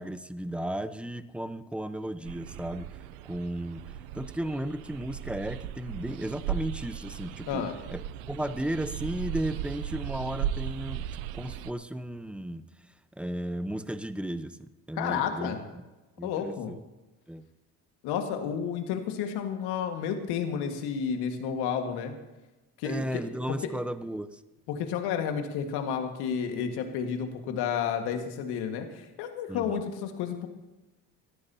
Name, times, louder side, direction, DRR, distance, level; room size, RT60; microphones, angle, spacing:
voice 1, 0.0-3.0 3.2-3.8 4.1-12.6 13.2-15.8 16.2-16.8 17.3-17.4 22.8-24.4 29.5-29.8, right 1 dB, 5° right, 12 dB, 0.9 m, -35 dB
sound 1, 2.3-11.7, right 10 dB, 85° right, 0.6 m, -37 dB
voice 2, 14.9-15.6 16.2-16.7 18.0-22.1 22.8-23.0 24.7-30.5, left 7 dB, 70° left, 5 dB, 1.9 m, -31 dB
20.0 x 14.0 x 2.9 m, 1.1 s
hypercardioid pair, 60°, 40 cm